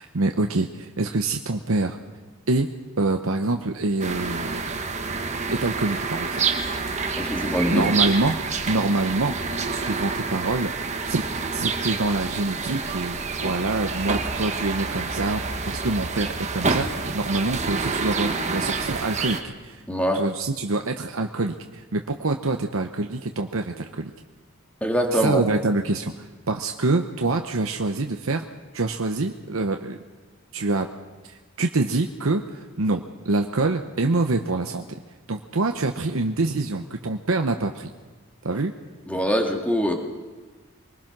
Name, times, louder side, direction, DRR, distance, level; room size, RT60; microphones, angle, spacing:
voice 1, 0.0-2.0 2.5-2.7 3.0-4.6 5.6-6.4 7.7-8.4 8.7-9.4 9.7-10.7 11.1-11.2 11.5-19.8 20.1-24.1 25.1-28.4 28.7-30.0 30.5-30.9 31.3-34.8 35.3-37.9 38.4-38.7, right 2 dB, 70° right, 5 dB, 0.9 m, -25 dB
sound 1, 4.0-19.4, right 4 dB, 35° right, 1.4 m, -28 dB
voice 2, 7.2-7.9 19.9-20.2 24.8-25.4 39.1-39.9, equal, 5° left, 2 dB, 2.2 m, -23 dB
23.5 x 20.0 x 6.1 m, 1.3 s
head